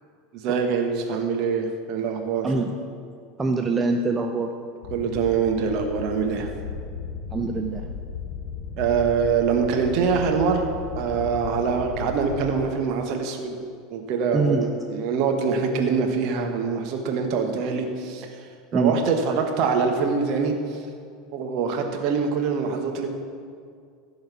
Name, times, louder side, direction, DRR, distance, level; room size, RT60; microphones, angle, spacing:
voice 1, 0.3-2.5 4.9-6.5 8.8-10.7 10.9-13.6 13.9-18.3 18.7-20.8 21.3-23.1, right 5 dB, 50° right, 3 dB, 1.4 m, -24 dB
voice 2, 3.4-4.5 7.3-7.9 14.3-14.6 18.7-18.9, right 3 dB, 20° right, 3 dB, 0.7 m, -24 dB
sound 1, 4.8-12.6, left 5 dB, 50° left, 1.8 m, -35 dB
15.5 x 5.6 x 5.9 m, 2.2 s
figure-of-eight pair, 75°, 0 cm